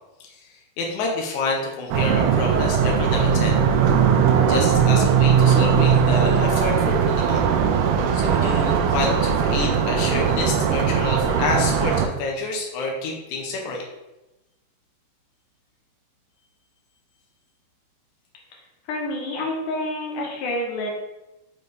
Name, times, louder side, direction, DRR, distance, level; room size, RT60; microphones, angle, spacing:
voice 1, 0.8-3.6 4.5-7.5 8.1-13.8, left 3 dB, 80° left, 0 dB, 1.7 m, -28 dB
sound 1, 1.9-12.1, right 7 dB, 80° right, 2.5 m, -19 dB
voice 2, 18.9-20.9, left 1 dB, 65° left, -2 dB, 2.4 m, -28 dB
6.5 x 5.3 x 3.3 m, 0.99 s
omnidirectional pair, 4.7 m